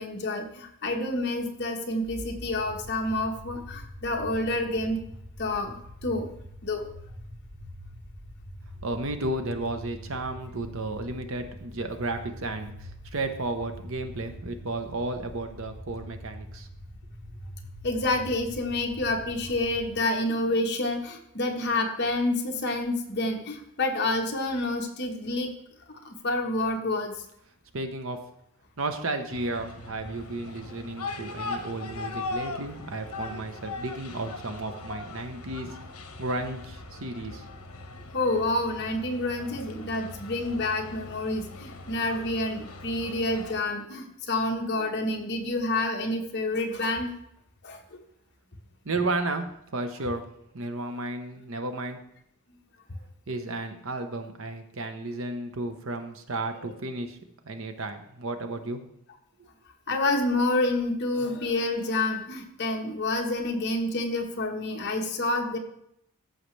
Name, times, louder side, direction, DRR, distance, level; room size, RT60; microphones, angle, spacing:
voice 1, 0.0-5.0 5.4-6.3 6.6-6.9 17.8-25.5 26.0-27.2 38.1-47.1 47.6-48.0 56.6-56.7 59.9-65.6, left 2 dB, 50° left, 2 dB, 1.3 m, -28 dB
sound 1, 2.0-20.0, equal, 35° right, 4.1 m, -44 dB
voice 2, 8.8-16.7 27.7-28.2 28.8-35.8 36.2-37.4 48.8-49.5 49.7-52.0 53.3-57.2 57.4-58.8, right 2 dB, 60° right, 7 dB, 0.9 m, -33 dB
sound 2, 29.3-43.6, left 3 dB, 75° left, 1.1 m, -40 dB
14.0 x 5.8 x 3.3 m, 0.74 s
head